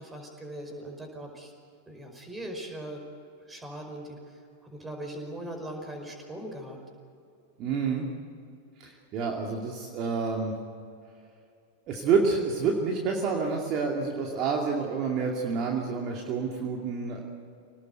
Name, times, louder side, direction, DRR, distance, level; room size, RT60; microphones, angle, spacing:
voice 1, 0.0-1.5 1.9-3.0 3.5-4.2 4.6-6.8, right 1 dB, 10° right, 3 dB, 5.2 m, -40 dB
voice 2, 7.6-8.1 8.8-10.5 11.9-17.2, right 5 dB, 35° right, 0 dB, 2.5 m, -28 dB
27.0 x 19.0 x 8.2 m, 2.5 s
figure-of-eight pair, 90°, 0 cm